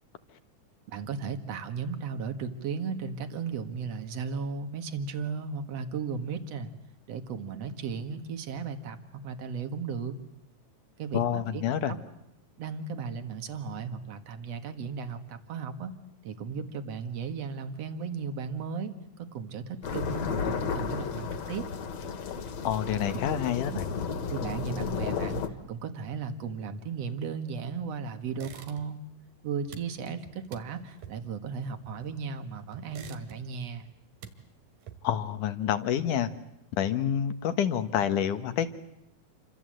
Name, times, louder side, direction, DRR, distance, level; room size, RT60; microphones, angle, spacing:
voice 1, 0.9-6.7 7.1-10.2 11.0-12.0 12.6-15.9 16.2-21.7 23.7-23.8 24.3-29.0 29.4-33.9, right 5 dB, 55° right, 8 dB, 2.8 m, -36 dB
voice 2, 11.1-11.9 22.6-23.9 35.0-36.3 36.8-38.7, left 9 dB, 80° left, 10 dB, 2.9 m, -28 dB
sound 1, 19.8-25.5, left 5 dB, 60° left, 2.8 m, -33 dB
sound 2, 28.3-29.1 29.4-32.3 32.7-33.7 34.0-35.3, right 7 dB, 85° right, 3.5 m, -48 dB
29.0 x 25.0 x 7.9 m, 0.83 s
omnidirectional pair, 3.6 m